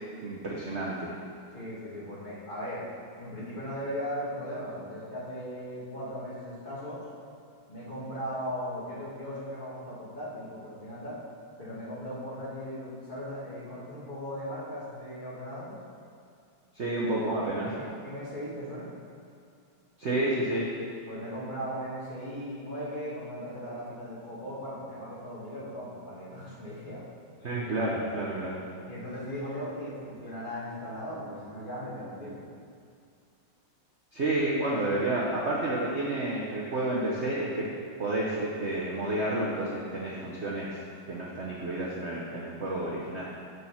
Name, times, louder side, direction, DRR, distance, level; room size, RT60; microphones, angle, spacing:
voice 1, 0.2-1.1 16.7-17.7 20.0-20.7 27.4-28.6 34.1-37.7 38.0-40.8 41.1-43.2, right 1 dB, 45° right, -4 dB, 0.9 m, -30 dB
voice 2, 1.5-2.9 3.2-7.0 7.7-11.2 11.6-15.8 17.6-18.9 21.1-27.0 28.8-32.4 42.8-43.0, equal, 25° left, -8 dB, 1.8 m, -38 dB
7.0 x 6.4 x 5.7 m, 2.4 s
omnidirectional pair, 2.2 m